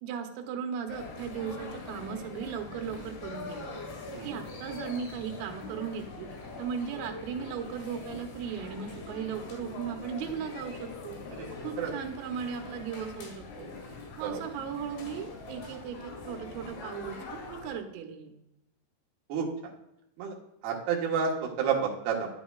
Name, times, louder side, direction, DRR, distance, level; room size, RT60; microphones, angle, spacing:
voice 1, 0.0-3.6 4.2-6.3 6.6-11.2 11.6-13.7 14.2-18.3, right 7 dB, 85° right, 4 dB, 3.6 m, -37 dB
sound 1, 0.9-17.7, left 3 dB, 60° left, 3.4 m, -43 dB
voice 2, 19.3-19.7 20.2-20.4 20.6-22.3, right 6 dB, 65° right, -1 dB, 2.9 m, -30 dB
10.0 x 8.2 x 2.4 m, 0.85 s
omnidirectional pair, 5.8 m